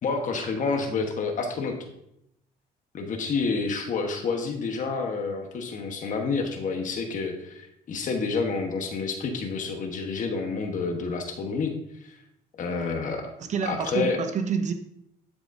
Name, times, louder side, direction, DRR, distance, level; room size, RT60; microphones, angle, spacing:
voice 1, 0.0-1.8 2.9-11.7 12.0-12.2 12.6-13.3 13.6-14.2, left 4 dB, 50° left, 3 dB, 1.2 m, -29 dB
voice 2, 13.4-14.7, right 6 dB, 45° right, 7 dB, 0.7 m, -28 dB
11.0 x 6.1 x 2.7 m, 0.76 s
cardioid pair, 110°, 17 cm